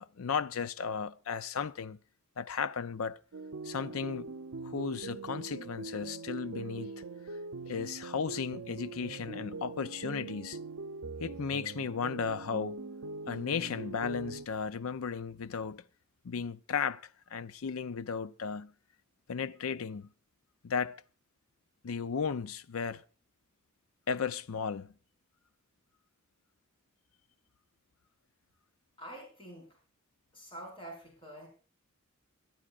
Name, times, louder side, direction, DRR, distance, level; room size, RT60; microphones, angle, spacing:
voice 1, 0.0-2.0 2.4-3.2 3.6-4.3 4.6-6.9 7.3-7.4 7.7-10.6 11.2-12.9 13.3-15.8 16.2-18.7 19.3-20.1 20.6-21.0 21.8-23.0 24.1-24.9, left 6 dB, 80° left, 0.5 m, -35 dB
sound 1, 3.3-14.5, right 3 dB, 75° right, 0.6 m, -42 dB
voice 2, 29.0-29.8 30.3-31.5, right 1 dB, 25° left, 4.8 m, -46 dB
23.0 x 12.0 x 2.5 m
head